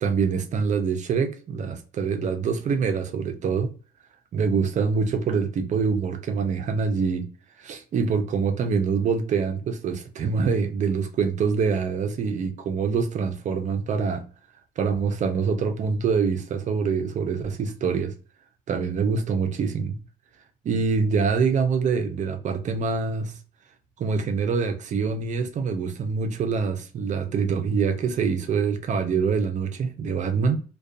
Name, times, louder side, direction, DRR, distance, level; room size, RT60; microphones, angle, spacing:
voice 1, 0.0-3.7 4.3-7.3 7.6-14.3 14.8-18.1 18.7-20.0 20.6-23.4 24.0-30.6, right 5 dB, 45° right, 0.5 m, -25 dB
2.4 x 2.3 x 2.5 m
cardioid pair, 110°, 17 cm